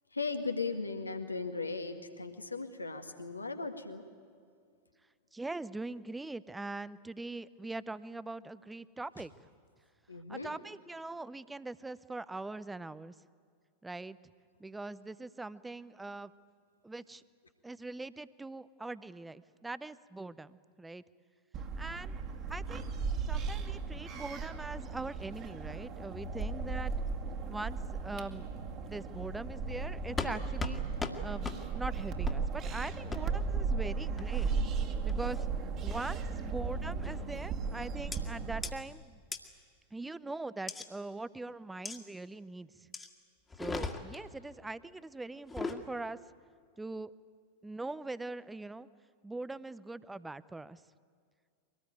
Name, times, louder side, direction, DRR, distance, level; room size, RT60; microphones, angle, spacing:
voice 1, 0.1-4.0 10.1-10.5, left 4 dB, 80° left, 6 dB, 1.8 m, -37 dB
voice 2, 5.3-9.3 10.3-13.1 13.8-14.2 14.6-16.3 16.8-17.2 17.6-21.0 21.8-22.2 22.5-22.9 23.3-26.9 27.5-28.5 28.9-30.8 31.2-34.5 35.0-35.5 35.8-39.2 39.9-42.9 43.6-46.2 46.8-47.1 47.6-48.9 49.2-50.8, right 2 dB, 10° right, 17 dB, 0.6 m, -42 dB
sound 1, 21.5-38.7, right 5 dB, 35° right, 2.1 m, -36 dB
sound 2, 30.2-30.3 30.6-30.7 31.0-31.1 31.4-31.6 32.2-32.4 33.1-33.2 34.2-34.5 35.1-35.4 35.9-36.2 37.0-37.3 38.1-38.2 38.6-38.7 39.3-39.4 40.7-40.9 41.8-42.0 42.9-43.1 43.5-44.2 45.4-45.8, left 4 dB, 15° left, 1.9 m, -38 dB
24.0 x 19.0 x 9.3 m, 2.2 s
figure-of-eight pair, 90°, 0 cm